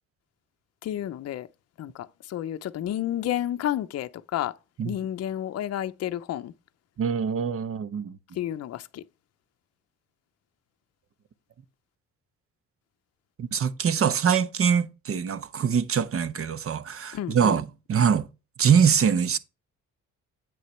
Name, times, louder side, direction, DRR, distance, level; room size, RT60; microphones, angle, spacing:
voice 1, 0.8-1.5 1.8-4.5 4.8-6.5 8.3-9.0 17.1-17.6, left 11 dB, 55° left, 0.6 m, -31 dB
voice 2, 7.0-8.2 13.4-18.3 18.6-19.4, right 7 dB, 45° right, 0.9 m, -23 dB
8.6 x 6.4 x 3.2 m
cardioid pair, 90°, 30 cm